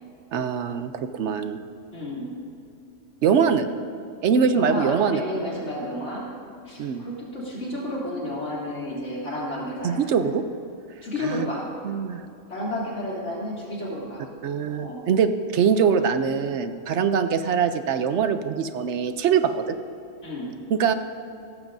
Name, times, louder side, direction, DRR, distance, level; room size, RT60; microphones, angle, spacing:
voice 1, 0.3-1.6 3.2-3.7 4.2-5.2 6.8-7.0 9.8-10.4 11.2-11.5 11.8-12.2 14.4-19.6 20.8-20.9, right 6 dB, 65° right, 10 dB, 0.9 m, -23 dB
voice 2, 1.9-2.3 4.5-6.3 6.7-10.0 11.0-11.7 12.5-14.3 14.7-15.0 20.2-20.5, left 1 dB, 60° left, -6 dB, 3.4 m, -31 dB
16.0 x 14.5 x 2.6 m, 2.7 s
omnidirectional pair, 1.4 m